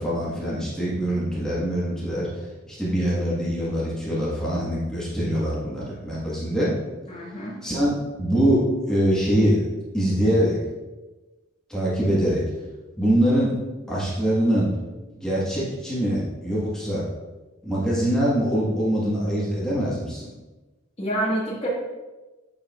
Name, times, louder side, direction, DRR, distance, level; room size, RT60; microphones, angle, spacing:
voice 1, 0.0-6.7 7.6-8.6 8.9-9.6 9.9-10.6 11.7-12.4 13.0-13.5 13.9-14.7 15.2-17.0 17.6-20.2, equal, 5° left, -8 dB, 1.3 m, -23 dB
voice 2, 7.1-7.6 21.0-21.7, right 1 dB, 30° left, -4 dB, 1.4 m, -27 dB
8.4 x 4.7 x 2.4 m, 1.1 s
head